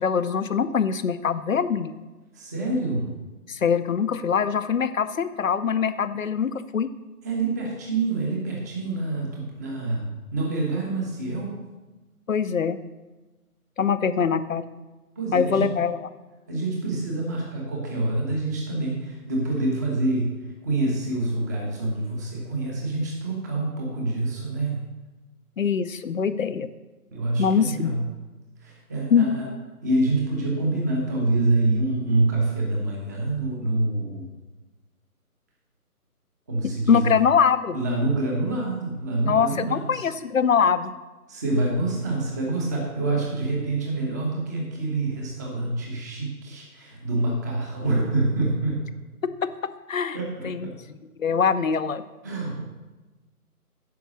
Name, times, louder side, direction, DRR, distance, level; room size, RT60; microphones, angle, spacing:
voice 1, 0.0-1.9 3.5-6.9 12.3-12.8 13.8-14.6 15.3-16.1 25.6-26.7 27.4-28.0 29.1-29.4 36.6-37.8 39.2-40.9 49.6-50.2 50.4-50.7 51.2-52.0, left 6 dB, 60° left, 13 dB, 0.7 m, -23 dB
voice 2, 2.3-3.1 7.2-11.5 15.2-15.7 16.5-24.8 27.1-28.0 28.6-29.5 29.8-34.3 36.5-37.1 37.7-40.0 41.3-48.8 50.1-50.7 52.2-52.6, right 2 dB, 10° right, -1 dB, 1.0 m, -26 dB
9.4 x 6.0 x 6.3 m, 1.2 s
figure-of-eight pair, 150°, 45 cm